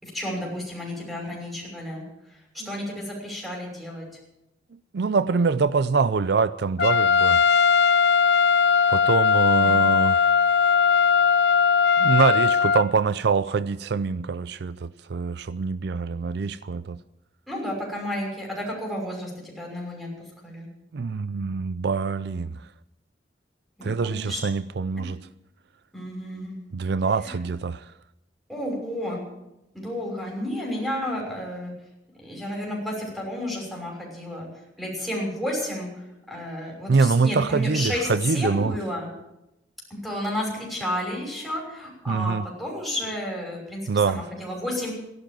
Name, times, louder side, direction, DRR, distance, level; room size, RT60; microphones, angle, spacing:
voice 1, 0.0-2.0 2.6-4.0 9.6-9.8 17.5-20.1 20.4-20.7 23.8-24.4 25.9-26.6 28.5-29.2 29.7-31.7 32.2-34.5 34.8-35.9 36.3-38.1 38.3-39.1 39.9-43.8 44.1-44.9, left 1 dB, ahead, 6.0 m, -31 dB
voice 2, 4.9-7.5 8.9-10.3 12.0-17.0 20.9-22.7 23.8-25.2 26.7-27.9 36.9-38.8 42.1-42.5 43.9-44.2, right 4 dB, 65° right, 0.5 m, -24 dB
Trumpet, 6.8-12.9, left 6 dB, 65° left, 0.5 m, -19 dB
15.5 x 11.5 x 7.5 m
head